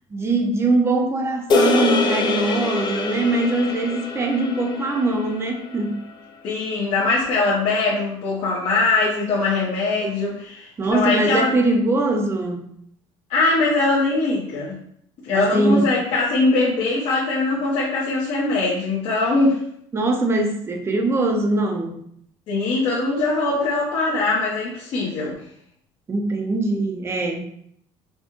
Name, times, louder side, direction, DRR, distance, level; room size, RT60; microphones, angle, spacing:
voice 1, 0.1-6.0 10.8-12.7 15.3-15.9 19.9-22.0 26.1-27.4, right 2 dB, 20° right, 3 dB, 0.6 m, -22 dB
sound 1, 1.5-6.0, left 3 dB, 40° left, 0.5 m, -24 dB
voice 2, 6.4-11.5 13.3-14.7 15.2-19.6 22.5-25.3, left 3 dB, 55° left, -7 dB, 0.9 m, -21 dB
4.2 x 2.2 x 3.0 m, 0.67 s
cardioid pair, 130°, 12 cm